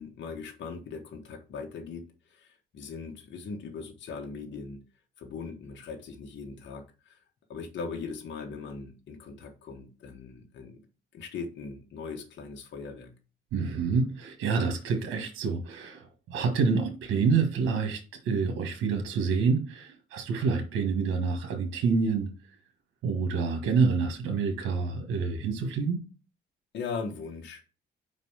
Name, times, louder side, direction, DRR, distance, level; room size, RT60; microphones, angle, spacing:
voice 1, 0.0-4.8 5.2-7.2 7.5-10.8 11.1-13.1 26.7-27.6, left 5 dB, 65° left, 1.4 m, -39 dB
voice 2, 13.5-22.3 23.0-26.0, right 5 dB, 85° right, 1.4 m, -27 dB
5.1 x 4.2 x 5.6 m
cardioid pair, 90°, 20 cm